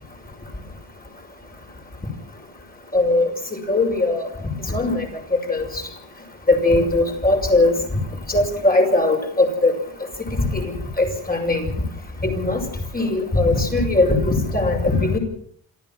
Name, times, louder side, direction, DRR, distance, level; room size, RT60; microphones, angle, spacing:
voice 1, 2.9-3.3 3.7-4.3 4.7-5.1 5.5-5.7 6.5-7.7 8.3-9.7 10.3-10.7 11.0-11.7 12.2-12.6 12.9-15.2, left 2 dB, 20° left, 3 dB, 5.9 m, -19 dB
27.5 x 14.0 x 7.5 m, 0.63 s
cardioid pair, 135°, 45 cm